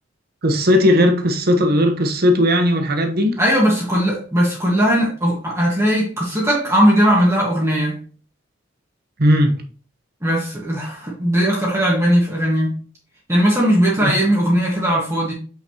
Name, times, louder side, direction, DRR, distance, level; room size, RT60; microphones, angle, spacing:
voice 1, 0.4-3.4 9.2-9.6 14.0-14.1, equal, 55° right, 1.0 m, -16 dB
voice 2, 3.4-8.0 10.2-12.8 13.3-15.3, equal, 15° right, 1.5 m, -18 dB
5.7 x 5.7 x 2.9 m
head